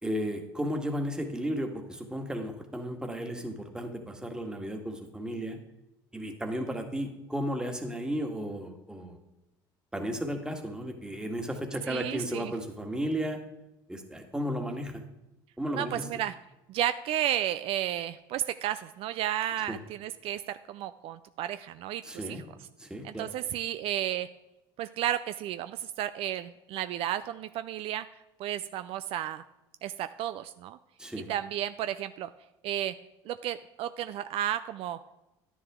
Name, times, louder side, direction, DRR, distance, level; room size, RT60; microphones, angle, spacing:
voice 1, 0.0-5.6 6.1-9.2 9.9-13.4 13.9-15.0 15.6-16.1 19.7-19.8 22.0-22.4 22.8-23.3 31.0-31.3, equal, 5° right, 4 dB, 1.7 m, -34 dB
voice 2, 11.9-12.5 15.7-16.3 16.7-22.4 23.0-24.3 24.8-28.1 28.4-29.4 29.8-30.8 31.3-32.3 32.6-32.9 33.3-35.0, right 12 dB, 60° right, 12 dB, 0.4 m, -33 dB
10.5 x 10.0 x 3.6 m, 0.94 s
supercardioid pair, 90°, 11 cm